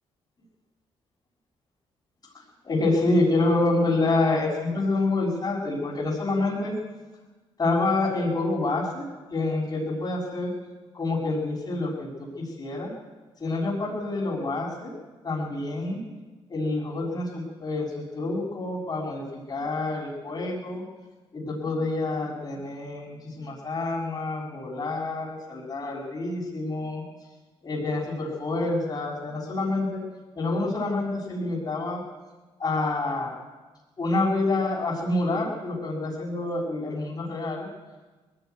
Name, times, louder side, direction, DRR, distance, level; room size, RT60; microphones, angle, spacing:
voice 1, 2.3-6.7 7.6-9.0 9.3-10.5 10.9-12.9 13.4-14.9 15.2-16.0 16.5-19.2 19.5-20.8 21.3-27.0 27.6-30.0 30.3-32.0 32.6-33.3 34.0-37.7, left 2 dB, 40° left, -6 dB, 6.5 m, -27 dB
20.0 x 14.0 x 9.5 m, 1.2 s
cardioid pair, 80°, 11 cm